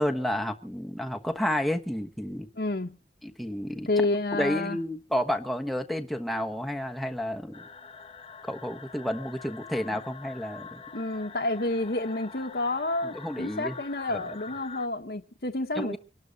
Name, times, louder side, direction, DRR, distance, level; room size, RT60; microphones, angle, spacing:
voice 1, 0.0-2.5 3.2-3.9 4.4-7.6 8.5-10.8 13.2-13.7 14.1-14.2 15.8-16.0, equal, ahead, 1.1 m, -30 dB
voice 2, 2.5-3.0 3.9-4.8 9.9-10.0 10.9-16.0, left 2 dB, 60° left, 1.1 m, -29 dB
sound 1, 7.5-14.9, left 5 dB, 30° left, 1.3 m, -45 dB
25.0 x 12.0 x 4.0 m
head